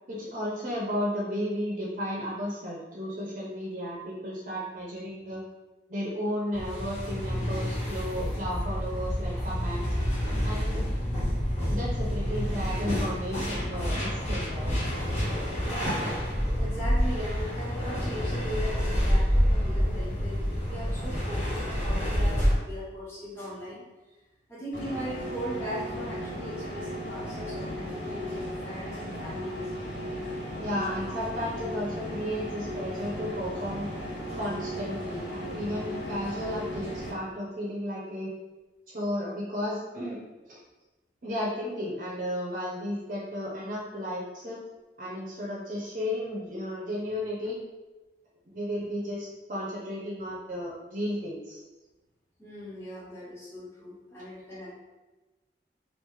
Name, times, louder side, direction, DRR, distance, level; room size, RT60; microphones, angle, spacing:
voice 1, 0.1-5.4 5.9-9.9 10.4-10.8 11.7-14.7 15.1-15.3 15.8-16.1 30.6-33.9 34.3-38.3 38.9-40.2 40.4-40.6 41.2-44.6 45.0-47.6 48.5-51.6, equal, 45° right, -4 dB, 0.6 m, -33 dB
sound 1, 6.5-22.5, equal, 40° left, 1.2 m, -28 dB
voice 2, 15.6-15.9 16.6-23.8 24.5-28.4 28.6-29.7 52.4-54.7, equal, 15° left, -10 dB, 1.0 m, -39 dB
sound 2, 24.7-37.1, equal, 80° left, 1.4 m, -36 dB
2.9 x 2.5 x 3.7 m, 1.1 s
head